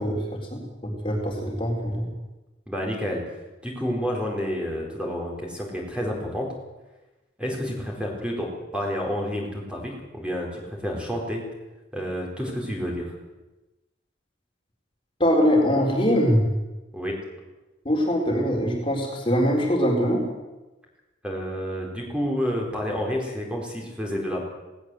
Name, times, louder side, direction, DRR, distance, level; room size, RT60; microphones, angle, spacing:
voice 1, 0.0-2.1 15.2-16.4 17.9-20.3, equal, 25° left, -1 dB, 3.8 m, -23 dB
voice 2, 2.7-3.2 3.6-6.5 7.4-11.4 11.9-13.2 16.9-17.2 21.2-24.4, equal, 5° right, -1 dB, 4.4 m, -29 dB
19.0 x 18.0 x 7.9 m, 1.1 s
head